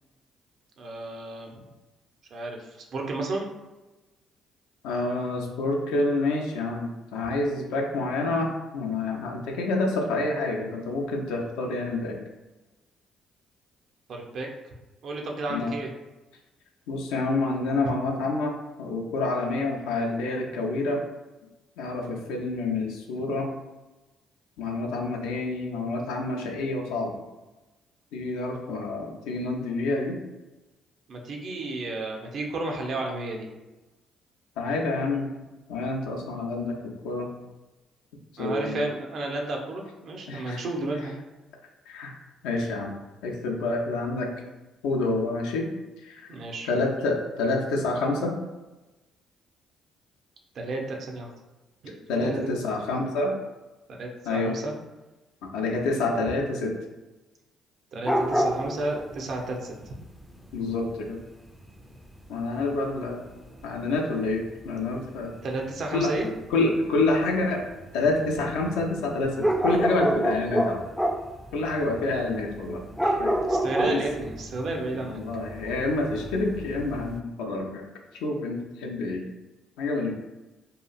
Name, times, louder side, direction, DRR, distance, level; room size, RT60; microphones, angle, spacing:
voice 1, 0.8-1.7 2.3-3.5 14.1-14.5 15.0-15.9 31.1-33.5 38.4-41.2 46.3-46.7 50.5-51.3 51.8-52.5 53.9-54.7 57.9-59.7 65.4-66.3 73.5-75.2, right 2 dB, 55° right, 1 dB, 0.5 m, -32 dB
voice 2, 4.8-12.2 15.5-15.7 16.9-21.0 21.8-23.5 24.6-27.2 28.1-30.2 34.6-35.3 35.7-37.3 38.3-38.9 40.3-40.6 41.9-42.2 42.4-43.0 43.2-44.3 44.8-45.7 46.0-46.3 46.6-48.4 52.1-53.3 54.3-54.5 55.5-56.7 60.5-61.2 62.3-63.2 63.6-65.4 65.9-66.1 66.5-67.6 67.9-70.8 71.5-73.4 73.8-74.0 75.1-77.9 78.2-79.2 79.8-80.1, left 2 dB, 75° left, 1 dB, 0.4 m, -28 dB
sound 1, 58.0-65.2 65.4-77.2, right 1 dB, ahead, 0.4 m, -29 dB
2.8 x 2.4 x 2.3 m, 1.1 s
hypercardioid pair, 50°, 0 cm